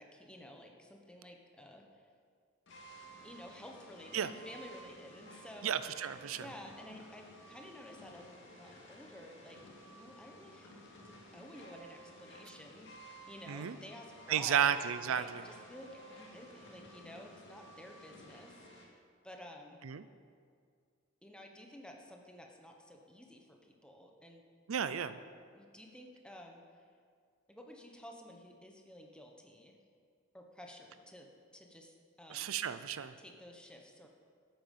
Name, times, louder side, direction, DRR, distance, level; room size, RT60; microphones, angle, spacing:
voice 1, 0.0-2.1 3.2-5.7 6.3-9.6 9.8-10.7 11.0-14.7 15.0-19.8 21.2-24.5 24.9-25.2 25.5-26.8 27.5-29.8 30.3-32.5 33.2-34.1, left 1 dB, 5° left, 1 dB, 1.1 m, -52 dB
sound 1, 2.7-18.8, right 1 dB, 60° left, 2.1 m, -54 dB
voice 2, 5.6-6.5 13.5-13.8 14.3-15.4 19.8-20.0 24.7-25.2 32.3-33.1, right 8 dB, 80° right, 13 dB, 0.5 m, -33 dB
13.0 x 8.9 x 5.5 m, 2.1 s
head